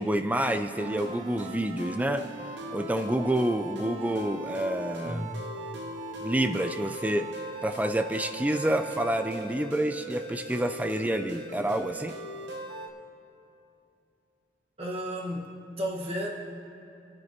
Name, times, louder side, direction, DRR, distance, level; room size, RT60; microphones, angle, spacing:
voice 1, 0.0-2.3 2.7-5.3 6.2-7.3 7.6-12.2, right 1 dB, 10° right, 8 dB, 0.3 m, -28 dB
sound 1, 0.8-12.9, right 2 dB, 70° right, 1.1 m, -39 dB
voice 2, 14.8-15.5 15.8-16.3, equal, 30° right, -2 dB, 1.4 m, -32 dB
26.5 x 9.5 x 2.9 m, 2.7 s
head